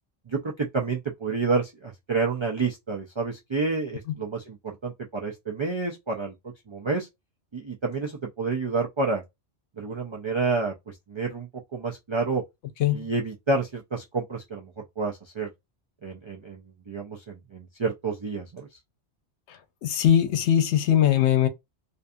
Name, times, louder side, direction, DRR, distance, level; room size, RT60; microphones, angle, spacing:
voice 1, 0.3-7.1 7.5-9.2 9.8-12.4 12.9-15.5 16.0-18.7, right 4 dB, 50° right, 0.3 m, -29 dB
voice 2, 19.8-21.5, left 10 dB, 80° left, 0.9 m, -20 dB
2.6 x 2.3 x 2.5 m
omnidirectional pair, 1.2 m